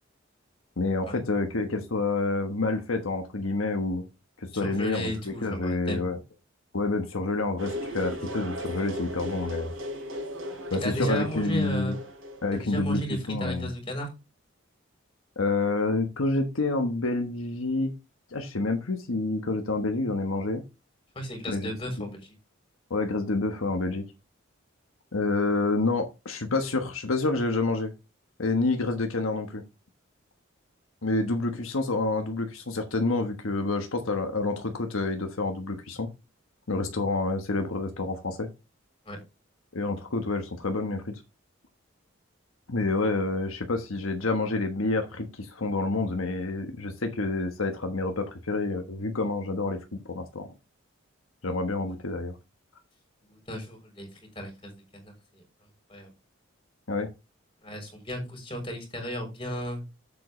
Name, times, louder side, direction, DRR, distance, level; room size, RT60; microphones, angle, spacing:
voice 1, 0.8-4.0 4.4-6.2 6.7-9.7 10.7-12.0 12.4-13.7 15.4-17.9 18.3-20.6 21.5-21.7 22.0-22.1 22.9-24.0 25.1-27.9 28.4-29.6 31.0-36.1 36.7-38.5 39.7-41.2 42.7-49.8 50.1-50.5 51.4-52.3 56.9-57.1, left 3 dB, 85° left, 4 dB, 1.3 m, -28 dB
voice 2, 4.6-6.0 10.8-12.0 12.6-14.1 21.2-22.2 39.1-39.2 53.3-54.1 54.4-55.4 55.9-56.1 57.6-59.8, equal, 25° left, 3 dB, 3.9 m, -34 dB
sound 1, 7.6-12.8, equal, 80° right, 4.1 m, -37 dB
8.2 x 7.6 x 3.2 m, 0.26 s
head